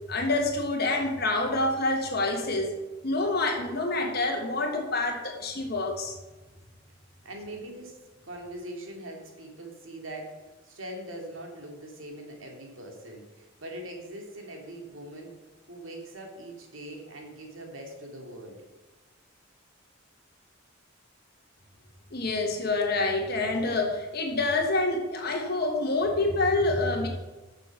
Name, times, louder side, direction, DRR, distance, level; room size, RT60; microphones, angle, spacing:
voice 1, 0.1-2.7 3.0-6.1 22.1-27.1, left 2 dB, 55° left, 2 dB, 1.5 m, -27 dB
voice 2, 7.2-8.0 8.2-15.3 15.7-18.6, right 1 dB, 85° right, 1 dB, 2.3 m, -42 dB
8.3 x 6.6 x 6.4 m, 1.2 s
head